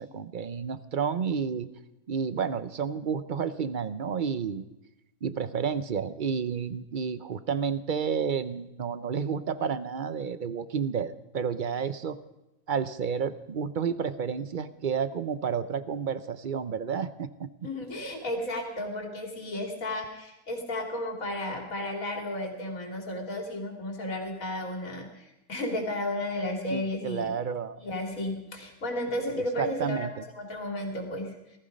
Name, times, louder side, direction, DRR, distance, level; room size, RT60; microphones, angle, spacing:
voice 1, 0.0-1.7 2.1-4.7 5.2-12.2 12.7-17.5 26.7-27.8 29.3-30.1, right 6 dB, 50° right, 14 dB, 0.6 m, -31 dB
voice 2, 17.6-27.3 27.8-31.4, left 1 dB, 65° left, 2 dB, 3.2 m, -33 dB
19.0 x 14.0 x 5.3 m, 0.94 s
omnidirectional pair, 1.5 m